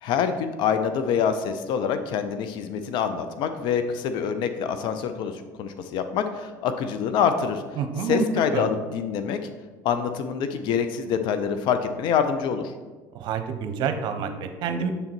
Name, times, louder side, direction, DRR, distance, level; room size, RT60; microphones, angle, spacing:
voice 1, 0.0-7.6 8.1-9.4 9.8-12.7, left 7 dB, 60° left, 9 dB, 0.5 m, -26 dB
voice 2, 7.8-8.3 8.5-8.7 13.1-14.9, right 6 dB, 60° right, 7 dB, 0.7 m, -28 dB
6.9 x 3.8 x 4.4 m, 1.4 s
hypercardioid pair, 80°, 9 cm